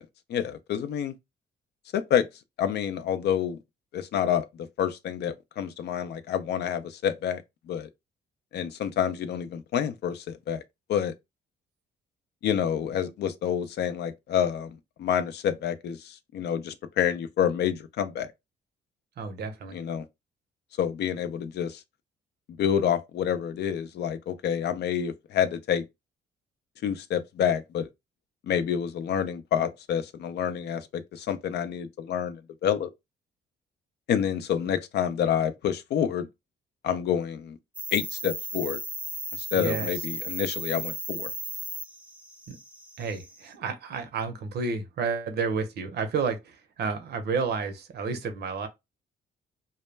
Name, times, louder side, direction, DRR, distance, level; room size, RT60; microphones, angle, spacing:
voice 1, 0.3-1.1 1.9-2.3 2.6-3.6 3.9-4.5 4.8-7.4 7.7-7.9 8.5-10.6 10.9-11.1 12.4-14.7 15.0-18.3 19.7-20.0 20.8-21.8 22.6-25.8 26.8-27.9 28.5-32.9 34.1-36.3 36.8-37.6 37.9-38.8 39.3-41.3, left 9 dB, 65° left, 0.4 m, -28 dB
voice 2, 19.2-19.8 39.6-39.9 42.5-42.6 43.0-48.7, right 5 dB, 60° right, 0.6 m, -31 dB
sound 1, 37.7-43.5, right 1 dB, 5° right, 0.5 m, -36 dB
2.1 x 2.0 x 3.2 m
cardioid pair, 95°, 19 cm